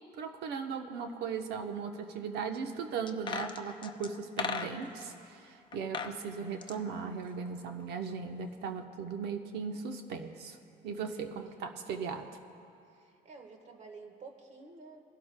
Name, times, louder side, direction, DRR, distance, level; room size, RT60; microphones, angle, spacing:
voice 1, 0.2-10.6 10.8-12.3, right 6 dB, 75° right, 5 dB, 0.9 m, -38 dB
sound 1, 3.1-5.1 5.7-6.2 6.5-7.8 8.1-8.2, left 5 dB, 30° left, 0.7 m, -38 dB
voice 2, 10.9-11.8 12.9-15.0, right 4 dB, 45° right, 4 dB, 1.4 m, -52 dB
23.0 x 12.0 x 2.2 m, 2.7 s
cardioid pair, 110°, 17 cm